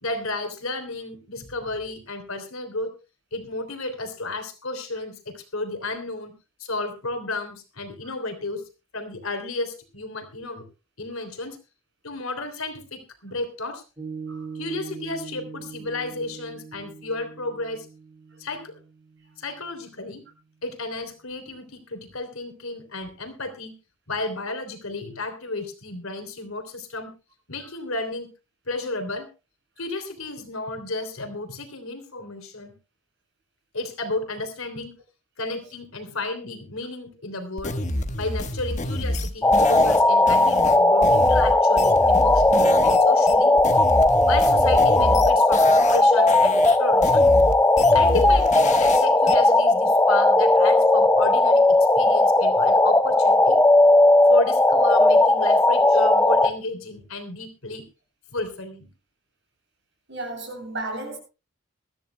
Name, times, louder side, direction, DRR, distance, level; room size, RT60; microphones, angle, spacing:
voice 1, 0.0-2.9 3.3-6.3 6.6-10.7 11.0-11.6 12.0-13.8 14.5-17.9 18.4-18.7 19.4-20.2 20.6-23.7 24.1-27.1 27.5-28.3 28.7-29.3 29.8-32.7 33.7-34.9 35.4-37.8 38.2-43.5 44.3-47.3 47.9-51.6 51.9-53.6 54.3-57.8 58.3-58.9, left 2 dB, 85° left, 3.2 m, -32 dB
Piano, 14.0-20.6, right 5 dB, 20° right, 2.3 m, -41 dB
sound 1, 37.6-43.0 43.3-46.0 46.3-49.3, left 1 dB, 35° left, 1.3 m, -28 dB
sound 2, 39.4-56.5, left 2 dB, 10° left, 0.6 m, -17 dB
voice 2, 60.1-61.2, right 2 dB, 55° right, 7.9 m, -34 dB
22.0 x 14.0 x 2.2 m
head